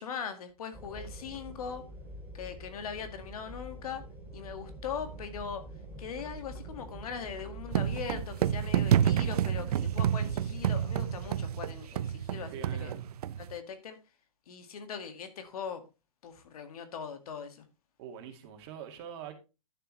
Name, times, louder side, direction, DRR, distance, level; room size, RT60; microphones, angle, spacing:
voice 1, 0.0-1.8 2.3-4.0 4.3-5.6 6.0-12.9 13.4-14.0 14.5-15.8 16.2-17.7, left 7 dB, 65° left, 2.0 m, -40 dB
sound 1, 0.7-11.3, right 1 dB, 10° right, 2.3 m, -46 dB
sound 2, 7.7-13.5, right 10 dB, 70° right, 0.6 m, -29 dB
voice 2, 12.5-13.1 18.0-19.3, right 8 dB, 40° right, 2.2 m, -44 dB
11.0 x 6.9 x 3.2 m
hypercardioid pair, 150°, 20 cm